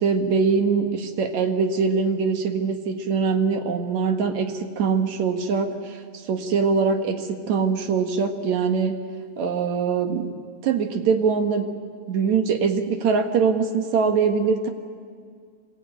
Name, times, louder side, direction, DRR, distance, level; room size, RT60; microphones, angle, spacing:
voice 1, 0.0-6.0 6.3-9.0 9.4-10.3 10.6-11.7 12.1-14.7, right 5 dB, 70° right, 5 dB, 2.8 m, -23 dB
25.5 x 21.5 x 9.1 m, 2.1 s
omnidirectional pair, 3.3 m